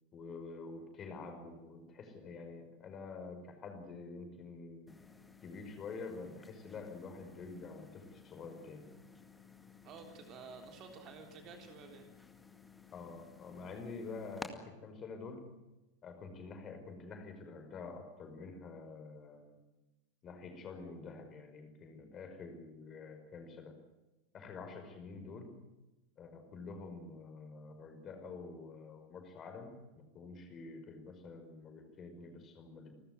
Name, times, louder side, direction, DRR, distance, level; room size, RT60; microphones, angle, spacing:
voice 1, 0.1-4.9 5.4-8.9 12.9-15.5 16.0-19.6 20.2-23.7 24.3-25.5 26.2-32.9, left 4 dB, 25° left, 6 dB, 5.4 m, -48 dB
sound 1, 4.9-14.5, left 4 dB, 10° left, 2.1 m, -55 dB
voice 2, 9.8-12.1, right 5 dB, 35° right, 4 dB, 3.5 m, -51 dB
29.5 x 13.5 x 9.7 m, 1.1 s
figure-of-eight pair, 90°, 0 cm